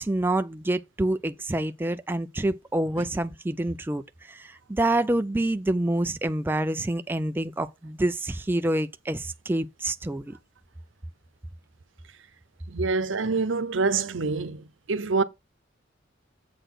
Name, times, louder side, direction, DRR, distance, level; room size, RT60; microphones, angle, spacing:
voice 1, 0.0-10.4, right 1 dB, 10° right, 0.4 m, -27 dB
voice 2, 12.7-15.2, right 4 dB, 85° right, 0.8 m, -26 dB
7.8 x 4.0 x 6.4 m
head